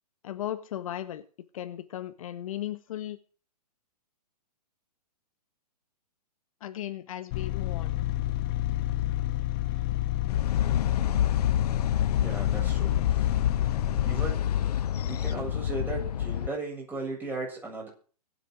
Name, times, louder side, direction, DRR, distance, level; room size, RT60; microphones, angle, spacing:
voice 1, 0.2-1.2 1.5-3.2 6.6-7.9, left 12 dB, 55° left, 1.4 m, -36 dB
sound 1, 7.3-14.3, left 15 dB, 35° left, 0.8 m, -29 dB
sound 2, 10.3-16.5, left 10 dB, 70° left, 0.6 m, -28 dB
voice 2, 12.2-13.4 13.9-14.5 15.0-17.9, right 3 dB, 10° right, 7.9 m, -37 dB
24.0 x 8.1 x 4.8 m
hypercardioid pair, 140°, 21 cm